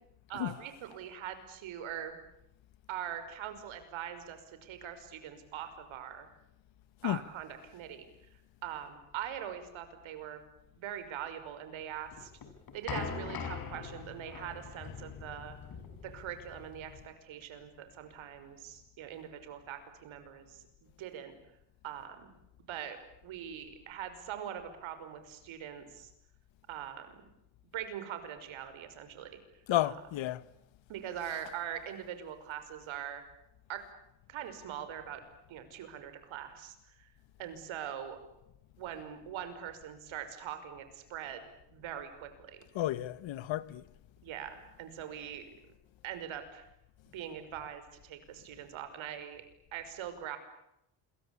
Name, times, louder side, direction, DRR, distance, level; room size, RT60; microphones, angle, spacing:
voice 1, 0.3-2.2 2.9-6.3 7.0-8.1 8.6-10.4 10.8-12.3 12.7-15.6 16.0-21.3 21.8-22.3 22.7-23.0 23.2-26.1 26.7-27.2 27.7-29.4 29.8-29.9 30.9-33.2 33.7-33.8 34.3-35.2 35.5-37.1 37.4-38.2 38.8-42.6 44.2-45.5 46.0-46.7 47.1-49.5 49.7-50.4, right 10 dB, 75° right, 5.6 m, -42 dB
sound 1, 12.1-17.1, left 5 dB, 45° left, 6.4 m, -42 dB
voice 2, 29.7-30.4 42.7-43.8, left 14 dB, 70° left, 1.4 m, -32 dB
28.5 x 23.0 x 8.6 m
cardioid pair, 120°, 48 cm